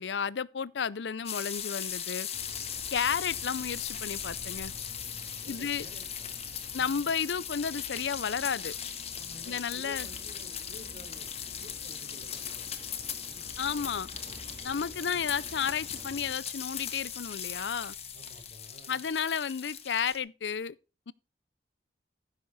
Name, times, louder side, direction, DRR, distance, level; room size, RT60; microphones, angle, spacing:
voice 1, 0.0-2.3 2.9-4.7 5.5-5.9 6.7-8.7 9.5-10.1 13.6-14.1 14.6-17.9 18.9-20.7 21.1-21.2, left 7 dB, 90° left, 0.5 m, -32 dB
sound 1, 1.3-20.2, left 8 dB, 35° left, 1.5 m, -39 dB
sound 2, 2.3-16.3, right 1 dB, 35° right, 2.9 m, -50 dB
voice 2, 3.0-3.4 5.4-6.8 9.2-11.3 11.6-13.5 18.1-19.0, equal, 55° right, 4.8 m, -53 dB
sound 3, 12.3-19.4, left 3 dB, 10° left, 0.9 m, -54 dB
15.0 x 6.7 x 4.1 m
head